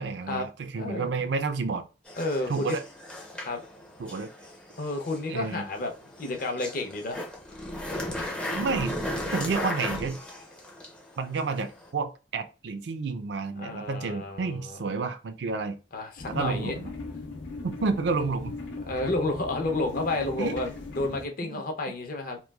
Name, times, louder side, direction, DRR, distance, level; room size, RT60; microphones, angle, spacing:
voice 1, 0.0-1.8 2.5-2.8 4.0-4.3 5.3-5.7 8.5-9.0 9.3-10.2 11.2-15.8 16.3-16.9 17.6-18.6 20.4-20.6 21.5-21.6, right 4 dB, 65° right, 0.4 m, -30 dB
voice 2, 0.7-1.1 2.2-2.8 3.4-3.6 4.8-5.9 6.2-7.2 13.6-14.8 15.9-16.8 18.9-22.4, left 2 dB, 50° left, 0.6 m, -31 dB
sound 1, 2.1-11.9, left 1 dB, 5° left, 0.4 m, -37 dB
sound 2, 16.2-21.3, left 3 dB, 85° left, 0.7 m, -39 dB
3.1 x 2.3 x 2.2 m
head